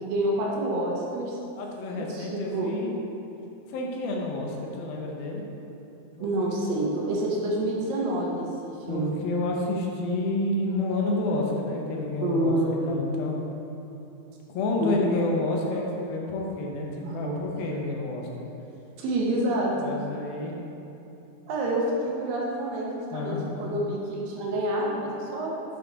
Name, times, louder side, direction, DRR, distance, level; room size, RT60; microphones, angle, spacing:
voice 1, 0.0-1.4 2.0-2.7 6.2-9.2 12.2-12.9 14.8-14.9 17.0-17.4 19.0-19.9 21.5-25.5, right 1 dB, 75° right, -3 dB, 2.4 m, -28 dB
voice 2, 1.6-3.0 3.7-5.4 6.2-6.6 8.9-12.6 12.9-13.4 14.5-18.5 19.8-20.6 23.1-23.8, left 2 dB, 80° left, -1 dB, 2.6 m, -29 dB
7.2 x 5.7 x 3.9 m, 2.9 s
omnidirectional pair, 4.3 m